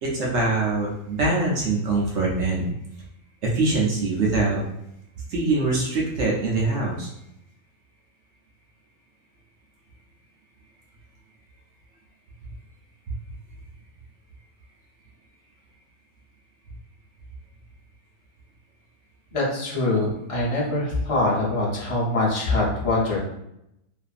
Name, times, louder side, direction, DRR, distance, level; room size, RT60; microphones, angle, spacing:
voice 1, 0.0-2.8 3.4-4.6 5.3-7.1, right 3 dB, 65° right, -3 dB, 0.8 m, -23 dB
voice 2, 19.3-23.2, left 2 dB, 35° left, -6 dB, 0.5 m, -23 dB
2.5 x 2.5 x 2.4 m, 0.82 s
omnidirectional pair, 1.5 m